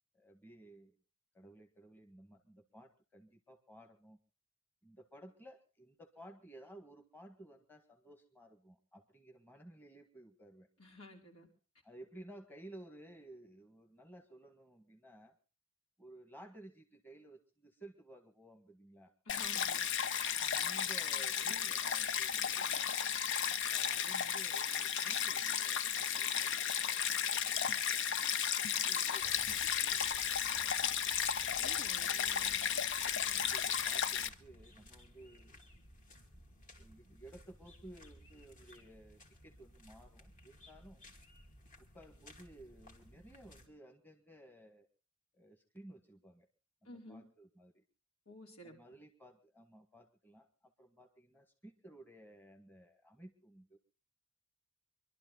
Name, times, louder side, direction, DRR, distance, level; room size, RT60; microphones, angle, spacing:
voice 1, 0.1-1.0 1.3-4.2 4.8-10.7 11.8-15.4 16.0-19.1 20.3-23.0 23.7-28.2 28.7-30.9 32.0-32.8 33.1-35.6 36.8-41.0 41.9-44.9 45.3-46.5 46.8-47.8 48.6-53.8, right 1 dB, 10° left, 3 dB, 1.7 m, -56 dB
voice 2, 10.8-11.5 19.3-19.8 31.6-32.1 46.8-47.2 48.3-48.7, left 1 dB, 75° left, 0 dB, 4.3 m, -52 dB
Stream, 19.3-34.3, left 8 dB, 55° left, 0.7 m, -34 dB
sound 1, 29.2-43.7, left 1 dB, 35° left, 2.6 m, -58 dB
25.0 x 12.0 x 4.0 m, 0.35 s
head